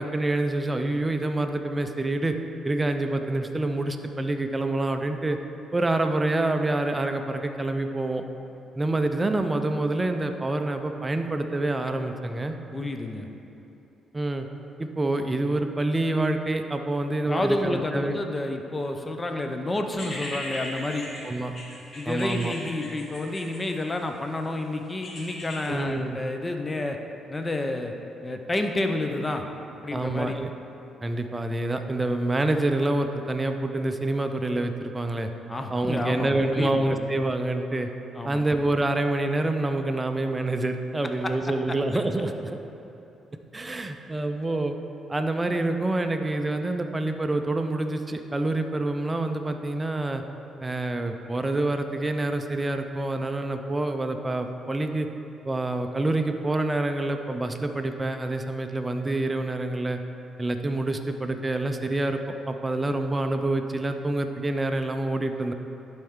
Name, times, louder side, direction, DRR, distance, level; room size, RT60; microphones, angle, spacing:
voice 1, 0.0-2.3 2.6-5.4 5.7-8.2 8.8-12.5 14.1-14.5 14.8-18.2 21.2-21.5 22.1-22.5 25.7-26.2 29.9-30.5 31.0-35.3 35.7-37.9 38.2-42.5 43.5-44.8 45.1-50.2 50.6-55.1 55.5-60.0 60.4-62.2 62.5-65.5, right 2 dB, 20° right, 6 dB, 0.5 m, -27 dB
voice 2, 12.7-13.3 17.3-21.1 22.0-27.0 27.3-27.9 28.2-29.5 29.8-30.4 35.5-37.0 38.1-38.4 41.2-41.3, left 2 dB, 20° left, 5 dB, 0.6 m, -30 dB
sound 1, 19.9-24.1 25.0-25.7, left 1 dB, 40° left, 1.7 m, -38 dB
11.0 x 4.4 x 3.7 m, 3.0 s
cardioid pair, 90°, 0 cm